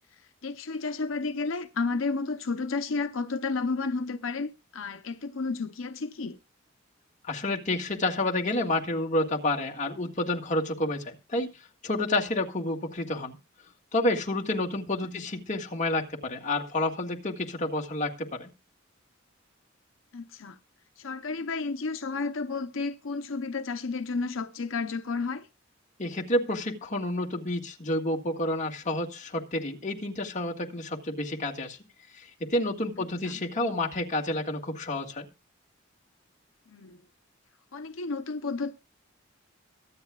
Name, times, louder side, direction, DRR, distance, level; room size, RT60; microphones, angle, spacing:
voice 1, 0.4-6.4 15.1-15.2 20.1-20.6 21.0-25.5 33.2-33.4 36.7-37.0 37.7-38.7, left 4 dB, 75° left, 0.8 m, -32 dB
voice 2, 7.2-11.5 11.8-13.4 13.9-18.5 26.0-31.8 32.2-35.3, left 1 dB, 40° left, 1.8 m, -29 dB
23.5 x 8.2 x 2.4 m
head